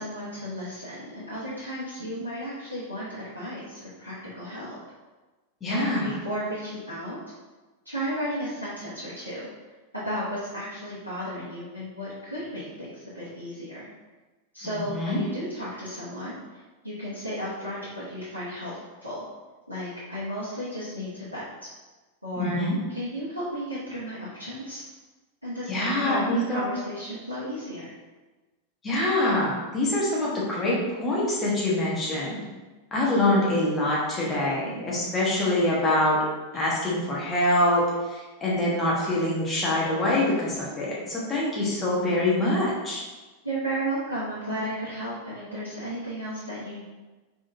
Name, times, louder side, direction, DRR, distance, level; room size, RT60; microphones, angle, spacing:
voice 1, 0.0-4.8 5.7-7.2 7.8-9.5 10.0-13.9 14.5-16.4 16.8-19.2 19.7-21.5 22.2-22.6 22.9-24.8 25.4-26.2 26.5-27.9 43.4-46.8, equal, 90° right, -11 dB, 0.9 m, -34 dB
voice 2, 5.6-6.1 14.6-15.2 22.4-22.8 25.7-26.6 28.8-32.4 32.9-36.3 36.5-43.0, left 1 dB, 20° left, -5 dB, 1.2 m, -25 dB
3.8 x 3.5 x 2.7 m, 1.2 s
figure-of-eight pair, 90°, 0 cm